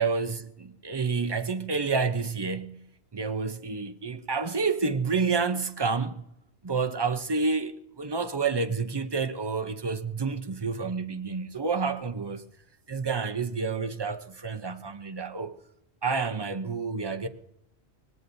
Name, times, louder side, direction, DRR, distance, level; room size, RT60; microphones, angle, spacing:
voice 1, 0.0-2.8 3.1-6.2 6.6-12.5 12.9-15.6 16.0-17.3, right 4 dB, 30° right, 0.6 m, -29 dB
24.0 x 20.0 x 2.7 m
omnidirectional pair, 1.1 m